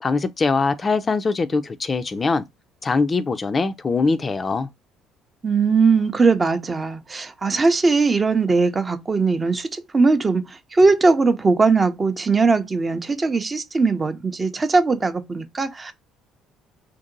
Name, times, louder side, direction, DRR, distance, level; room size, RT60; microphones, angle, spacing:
voice 1, 0.0-2.4 2.8-4.7, left 4 dB, 35° left, 0.3 m, -22 dB
voice 2, 5.4-9.7 9.9-10.4 10.7-15.9, right 4 dB, 30° right, 0.5 m, -19 dB
2.8 x 2.6 x 2.5 m
hypercardioid pair, 60°, 0 cm